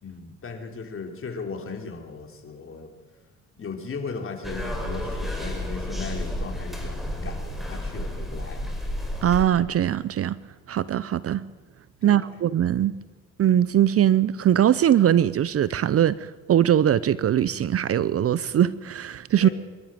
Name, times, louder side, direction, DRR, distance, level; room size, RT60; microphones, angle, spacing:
voice 1, 0.0-3.0 3.6-8.6 12.0-12.3 19.4-19.5, left 4 dB, 45° left, 3.7 m, -37 dB
sound 1, 4.4-9.4, equal, ahead, 5.0 m, -31 dB
voice 2, 9.2-10.4 10.7-11.5 12.0-12.9 13.4-19.5, right 10 dB, 50° right, 0.6 m, -21 dB
24.0 x 12.5 x 9.1 m
cardioid pair, 90°, 30 cm